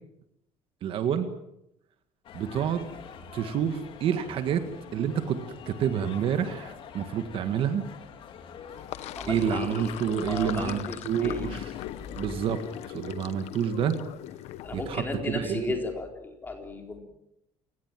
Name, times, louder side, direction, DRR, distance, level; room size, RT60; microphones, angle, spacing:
voice 1, 0.8-1.3 2.3-2.9 3.3-4.6 4.9-5.4 5.7-7.8 9.3-11.6 12.2-14.0 14.7-15.7, right 8 dB, 45° right, 9 dB, 1.8 m, -28 dB
sound 1, 2.2-12.9, left 7 dB, 45° left, 2.5 m, -46 dB
Sink (filling or washing), 8.7-15.0, left 13 dB, 60° left, 1.0 m, -40 dB
voice 2, 9.2-11.5 14.6-17.0, left 2 dB, 15° left, 3 dB, 3.9 m, -35 dB
29.0 x 18.0 x 7.6 m, 0.81 s
cardioid pair, 170°, 12 cm